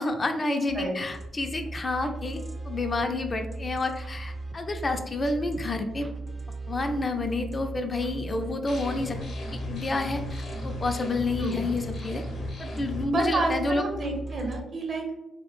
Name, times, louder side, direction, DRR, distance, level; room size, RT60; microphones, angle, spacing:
voice 1, 0.0-2.4 2.7-6.1 6.7-9.2 9.7-12.2 12.6-13.8, left 2 dB, 40° left, 5 dB, 0.3 m, -29 dB
sound 1, 0.7-14.6, right 3 dB, 30° right, 0.4 m, -38 dB
sound 2, 8.7-13.0, left 2 dB, 70° left, 0.7 m, -37 dB
voice 2, 13.1-15.1, right 2 dB, 55° right, 1 dB, 0.7 m, -29 dB
2.3 x 2.0 x 2.9 m, 0.98 s
hypercardioid pair, 40°, 0 cm